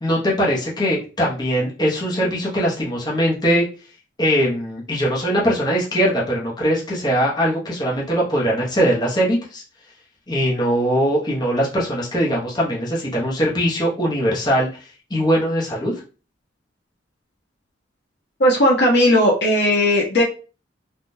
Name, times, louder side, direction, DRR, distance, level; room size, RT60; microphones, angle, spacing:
voice 1, 0.0-3.6 4.2-9.6 10.3-14.7 15.1-15.9, equal, 25° left, -4 dB, 0.9 m, -21 dB
voice 2, 18.4-20.2, equal, 65° left, 0 dB, 0.9 m, -16 dB
3.5 x 2.3 x 2.6 m, 0.35 s
head